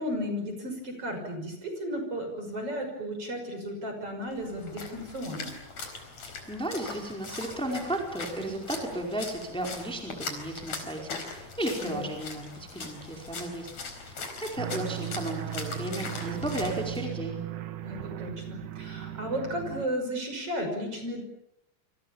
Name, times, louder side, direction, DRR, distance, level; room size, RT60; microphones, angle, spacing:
voice 1, 0.0-5.5 8.4-8.6 11.8-12.1 17.8-21.2, equal, 40° right, 5 dB, 6.9 m, -34 dB
Splash splatter, 4.3-17.0, left 4 dB, 50° left, 5.6 m, -41 dB
voice 2, 6.5-13.7 13.9-17.4, right 1 dB, ahead, 1 dB, 4.5 m, -34 dB
sound 1, 14.6-19.9, right 13 dB, 65° right, 2.8 m, -37 dB
29.0 x 26.0 x 7.2 m, 0.80 s
omnidirectional pair, 4.0 m